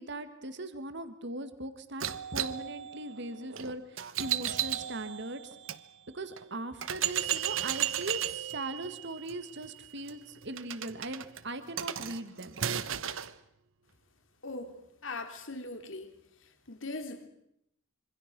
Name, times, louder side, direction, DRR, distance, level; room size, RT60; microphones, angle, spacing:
voice 1, 0.0-2.1 2.3-5.4 6.1-12.6, right 2 dB, 55° right, 10 dB, 1.9 m, -39 dB
sound 1, 2.0-5.8 6.4-6.5 6.8-13.3, right 10 dB, 70° right, 1.1 m, -35 dB
voice 2, 14.4-16.1 16.4-17.3, left 2 dB, 65° left, 7 dB, 3.1 m, -40 dB
26.5 x 25.0 x 6.1 m, 0.78 s
head